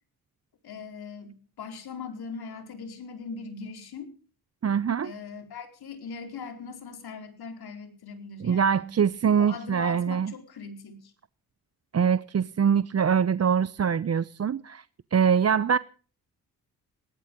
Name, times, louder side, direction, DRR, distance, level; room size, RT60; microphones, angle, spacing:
voice 1, 0.6-4.1 5.0-8.9 9.3-11.1, left 5 dB, 70° left, 7 dB, 4.4 m, -40 dB
voice 2, 4.6-5.1 8.4-10.3 11.9-14.8 15.1-15.8, right 7 dB, 40° right, 18 dB, 0.8 m, -23 dB
19.0 x 18.5 x 3.8 m, 0.40 s
supercardioid pair, 45°, 40 cm